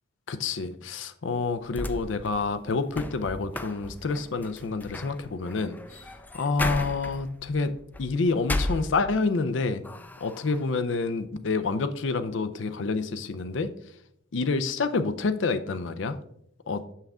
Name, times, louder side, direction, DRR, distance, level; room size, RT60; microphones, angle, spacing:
voice 1, 0.3-6.0 6.3-7.7 8.0-9.8 10.2-13.7 14.3-16.2 16.7-16.8, left 4 dB, 75° left, 11 dB, 0.5 m, -28 dB
sound 1, 1.7-9.4 9.8-10.6, left 1 dB, 10° left, 0.3 m, -35 dB
6.9 x 5.7 x 3.6 m, 0.73 s
head